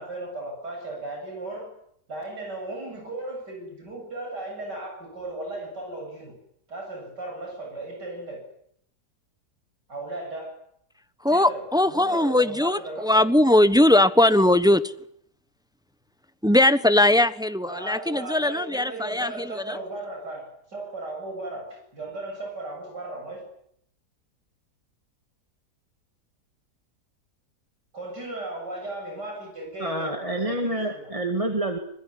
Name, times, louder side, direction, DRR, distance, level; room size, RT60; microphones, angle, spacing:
voice 1, 0.0-1.7 2.1-6.3 6.7-8.4 9.9-10.6 11.3-13.3 17.6-23.4 27.9-31.1, right 2 dB, 85° right, 1 dB, 8.6 m, -36 dB
voice 2, 11.2-14.9 16.4-19.8, left 1 dB, 5° right, 13 dB, 0.7 m, -20 dB
voice 3, 29.8-31.8, right 1 dB, 20° right, 4 dB, 2.3 m, -27 dB
26.0 x 21.5 x 9.9 m, 0.71 s
omnidirectional pair, 1.8 m